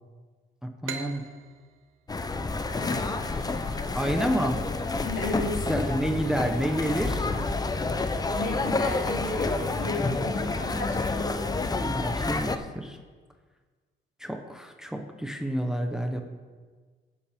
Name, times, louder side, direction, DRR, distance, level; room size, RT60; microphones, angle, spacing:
voice 1, 0.8-1.2 3.9-4.6 5.7-7.3 11.8-13.0 14.2-16.2, equal, 5° right, 4 dB, 0.9 m, -29 dB
sound 1, 0.8-4.3, right 8 dB, 80° right, 0.9 m, -42 dB
sound 2, 2.1-12.6, left 3 dB, 20° left, 0.6 m, -29 dB
sound 3, 2.6-11.3, right 4 dB, 30° right, 2.4 m, -52 dB
voice 2, 2.8-4.5 5.0-5.9 8.3-11.6, left 2 dB, 75° left, -3 dB, 3.2 m, -35 dB
16.0 x 7.5 x 3.6 m, 1.5 s
cardioid pair, 90°, 20 cm